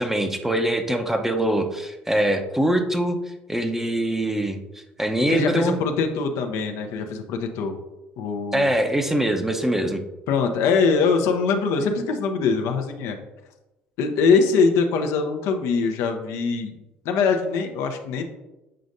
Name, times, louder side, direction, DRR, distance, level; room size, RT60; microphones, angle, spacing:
voice 1, 0.0-3.2 3.5-4.6 5.0-5.8 8.5-10.0, right 1 dB, 5° right, 5 dB, 0.8 m, -23 dB
voice 2, 5.3-7.7 8.2-8.7 10.3-13.2 14.0-16.7 17.0-18.2, left 5 dB, 65° left, 5 dB, 0.7 m, -22 dB
7.7 x 5.1 x 2.6 m, 1.0 s
hypercardioid pair, 60°, 6 cm